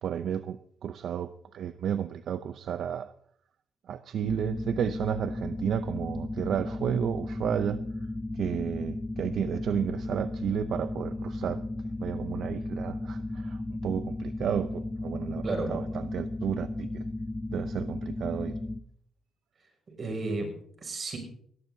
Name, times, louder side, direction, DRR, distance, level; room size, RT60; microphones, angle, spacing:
voice 1, 0.0-3.1 3.9-7.8 8.3-11.6 12.0-17.1 17.5-18.6, right 9 dB, 65° right, 12 dB, 0.6 m, -32 dB
sound 1, 4.2-18.8, left 2 dB, 10° left, 0.8 m, -35 dB
voice 2, 15.4-15.8 19.9-21.2, right 2 dB, 40° right, 4 dB, 6.3 m, -33 dB
21.0 x 16.5 x 2.8 m, 0.64 s
cardioid pair, 90°, 0 cm